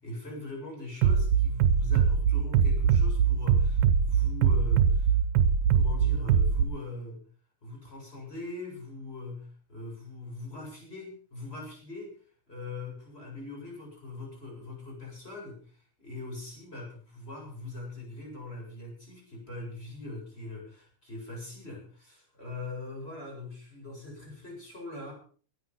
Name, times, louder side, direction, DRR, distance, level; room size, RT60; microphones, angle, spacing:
voice 1, 0.0-7.2 7.6-12.1 12.5-25.1, left 2 dB, 20° left, -1 dB, 8.1 m, -42 dB
Bass drum, 1.0-6.6, right 7 dB, 80° right, 2.3 m, -22 dB
19.5 x 11.0 x 5.6 m, 0.42 s
omnidirectional pair, 3.6 m